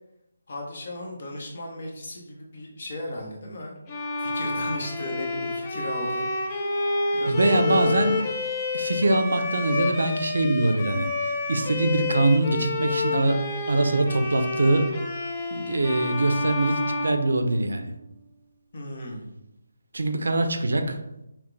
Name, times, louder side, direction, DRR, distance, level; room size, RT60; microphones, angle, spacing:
voice 1, 0.5-3.7 4.2-6.8 7.1-8.2 18.7-19.3, left 1 dB, 35° left, 0 dB, 0.9 m, -35 dB
Bowed string instrument, 3.9-18.0, left 3 dB, 15° left, 0.4 m, -29 dB
voice 2, 7.3-8.1 8.7-14.9 15.5-17.9 19.9-21.0, right 2 dB, 70° right, 6 dB, 0.6 m, -23 dB
5.9 x 2.2 x 3.3 m, 0.86 s
hypercardioid pair, 180°, 0 cm